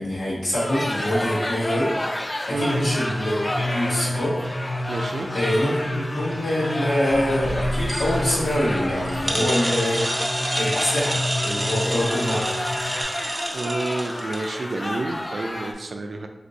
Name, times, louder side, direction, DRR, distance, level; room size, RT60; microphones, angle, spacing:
voice 1, 0.0-1.9 2.5-4.4 5.3-10.1 10.6-12.6, left 1 dB, 80° left, -8 dB, 1.3 m, -25 dB
sound 1, 0.5-15.7, left 1 dB, 25° left, 0.3 m, -31 dB
sound 2, 2.7-13.0, left 1 dB, 40° left, 0.7 m, -30 dB
voice 2, 4.9-5.3 13.5-16.3, right 2 dB, 80° right, 4 dB, 0.3 m, -29 dB
sound 3, 7.1-14.6, right 1 dB, 25° right, 0.6 m, -29 dB
2.6 x 2.5 x 3.9 m, 1.0 s
wide cardioid pair, 65°, 0 cm